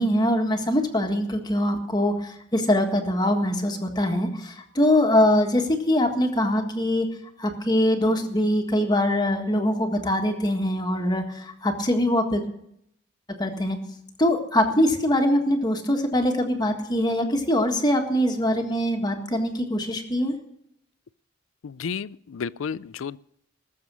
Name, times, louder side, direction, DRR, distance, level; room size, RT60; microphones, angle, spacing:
voice 1, 0.0-7.1 7.4-12.4 13.4-13.8 14.2-20.3, left 1 dB, 20° left, 4 dB, 1.6 m, -23 dB
voice 2, 21.6-23.2, left 6 dB, 85° left, 19 dB, 0.4 m, -32 dB
19.5 x 7.3 x 6.1 m, 0.74 s
head